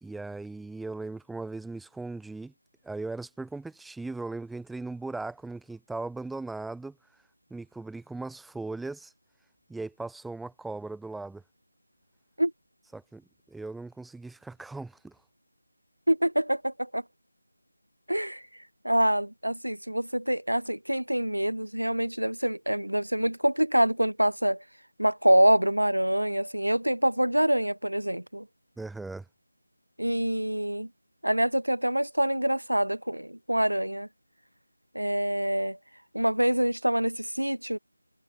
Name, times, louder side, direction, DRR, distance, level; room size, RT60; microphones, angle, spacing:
voice 1, 0.0-2.5 2.8-7.0 7.5-9.1 9.7-11.4 12.9-15.2 28.8-29.2, right 3 dB, ahead, 1.1 m, -38 dB
voice 2, 16.1-17.0 18.1-18.4 18.8-24.6 25.0-28.5 30.0-30.9 31.2-34.1 34.9-35.8 36.1-37.8, right 1 dB, 80° right, 0.8 m, -25 dB
figure-of-eight pair, 165°, 0 cm